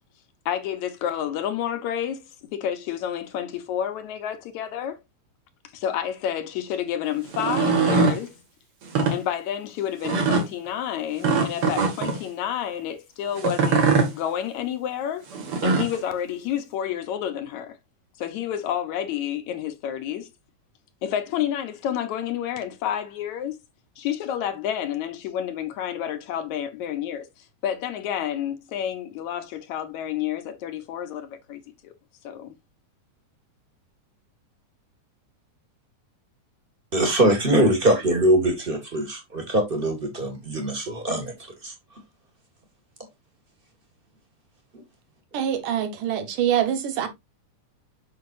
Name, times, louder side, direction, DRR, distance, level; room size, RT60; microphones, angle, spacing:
voice 1, 0.5-5.0 5.7-8.4 9.1-15.2 15.6-17.8 18.2-20.3 21.0-23.6 24.0-31.9 32.2-32.5, left 10 dB, 70° left, 2.1 m, -30 dB
sound 1, 7.3-8.2 8.8-9.2 10.0-10.5 11.2-12.2 13.4-14.1 15.3-16.0, right 4 dB, 50° right, 2.5 m, -22 dB
voice 2, 36.9-41.7, right 1 dB, 20° right, 1.6 m, -22 dB
voice 3, 45.3-47.1, right 9 dB, 80° right, 2.9 m, -24 dB
7.7 x 6.5 x 2.6 m
omnidirectional pair, 3.6 m